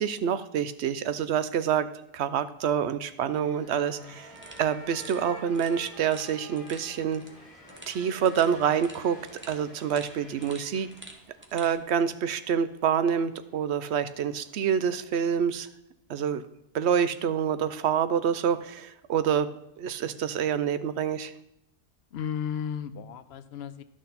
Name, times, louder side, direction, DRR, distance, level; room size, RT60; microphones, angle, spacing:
voice 1, 0.0-1.9 2.1-4.3 4.6-7.2 7.9-9.2 9.5-10.9 11.5-15.7 16.1-16.4 16.7-19.5 19.8-21.3, right 8 dB, 75° right, 12 dB, 0.9 m, -27 dB
sound 1, 3.3-11.1, equal, 30° left, 1.3 m, -50 dB
sound 2, 3.4-15.3, equal, 55° right, 3.9 m, -55 dB
sound 3, 4.3-11.8, right 1 dB, 10° right, 0.9 m, -50 dB
voice 2, 22.1-23.8, left 8 dB, 70° left, 13 dB, 0.8 m, -34 dB
11.0 x 6.2 x 4.1 m, 0.82 s
omnidirectional pair, 1.2 m